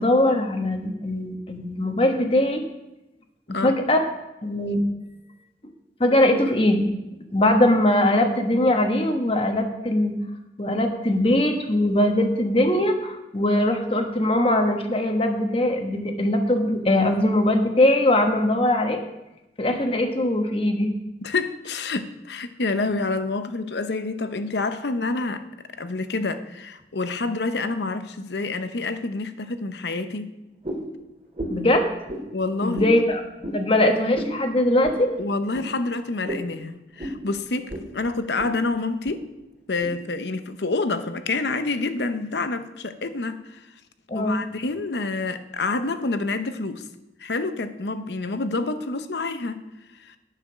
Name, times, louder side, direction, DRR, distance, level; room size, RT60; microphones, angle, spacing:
voice 1, 0.0-2.6 3.5-4.0 4.4-4.8 6.0-6.9 7.3-10.1 10.6-19.0 19.6-20.9 31.5-31.8 32.6-33.2 33.5-35.1 44.1-44.4, left 1 dB, 30° left, 4 dB, 1.2 m, -21 dB
voice 2, 21.2-25.4 25.8-30.3 32.3-33.0 35.2-39.2 39.7-43.6 44.1-46.8 47.2-49.6 50.0-50.1, left 3 dB, 70° left, 10 dB, 0.8 m, -28 dB
sound 1, 30.6-30.9 31.3-31.7 32.1-32.2 32.7-33.0 33.4-33.6 34.1-34.4 34.8-35.0 35.5-35.7 36.3-36.5 37.0-37.2 37.7-37.9 38.2-38.5 39.1-39.2 39.8-39.9, equal, 35° right, 2.7 m, -32 dB
10.0 x 6.8 x 6.2 m, 0.97 s
head